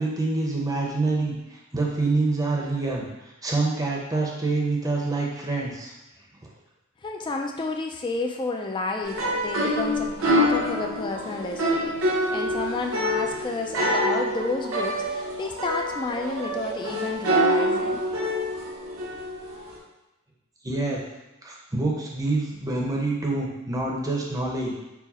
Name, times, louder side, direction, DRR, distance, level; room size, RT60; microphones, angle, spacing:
voice 1, 0.0-5.9 20.6-21.0 21.4-24.8, right 3 dB, 15° right, -2 dB, 0.7 m, -26 dB
voice 2, 7.0-18.0, left 3 dB, 20° left, 2 dB, 0.3 m, -31 dB
sound 1, 9.0-19.8, equal, 70° right, 0.9 m, -26 dB
4.6 x 2.1 x 4.1 m, 1.0 s
head